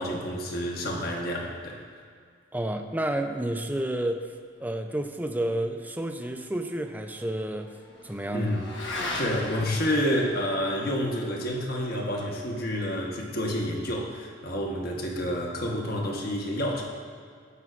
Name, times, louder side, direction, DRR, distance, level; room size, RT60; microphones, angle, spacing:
voice 1, 0.0-1.8 8.3-8.6 8.9-16.8, equal, 55° left, -1 dB, 1.2 m, -29 dB
voice 2, 2.5-4.3 4.6-7.7 8.0-8.5, right 1 dB, 10° right, 5 dB, 0.5 m, -30 dB
Motorcycle / Accelerating revving vroom, 6.0-14.7, left 1 dB, 85° left, 1.3 m, -41 dB
16.5 x 5.6 x 2.5 m, 2.1 s
head